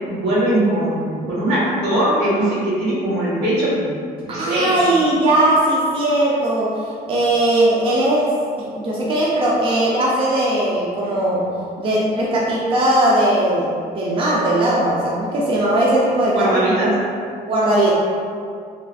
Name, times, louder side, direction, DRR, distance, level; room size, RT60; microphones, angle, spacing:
voice 1, 0.1-4.0 4.2-4.9 16.3-16.9, right 1 dB, 80° right, -8 dB, 1.4 m, -20 dB
voice 2, 4.3-8.3 8.8-11.5 11.8-13.7 13.9-16.6 17.5-17.9, right 1 dB, 30° right, -5 dB, 0.4 m, -18 dB
3.3 x 2.5 x 2.3 m, 2.3 s
cardioid pair, 110°, 17 cm